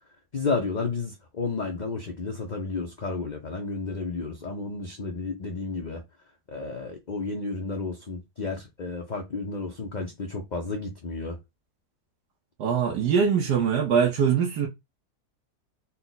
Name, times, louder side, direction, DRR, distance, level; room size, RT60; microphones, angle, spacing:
voice 1, 0.3-6.0 6.5-11.4, left 3 dB, 50° left, 0.5 m, -32 dB
voice 2, 12.6-14.7, right 7 dB, 85° right, 1.4 m, -22 dB
4.2 x 2.2 x 3.9 m
omnidirectional pair, 1.7 m